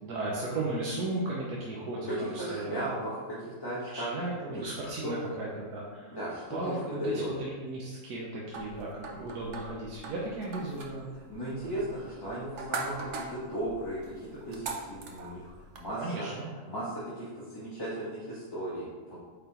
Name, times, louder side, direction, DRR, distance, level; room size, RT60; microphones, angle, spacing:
voice 1, 0.0-2.9 3.9-6.2 6.5-11.2 11.5-11.7 16.0-16.5, right 2 dB, 90° right, -4 dB, 1.4 m, -35 dB
voice 2, 2.1-4.1 4.6-5.1 6.1-7.3 11.3-16.3 16.6-19.2, right 1 dB, 15° left, -10 dB, 1.2 m, -36 dB
sound 1, 8.5-15.9, right 3 dB, 55° right, 1.0 m, -42 dB
8.4 x 4.1 x 2.9 m, 1.4 s
omnidirectional pair, 1.6 m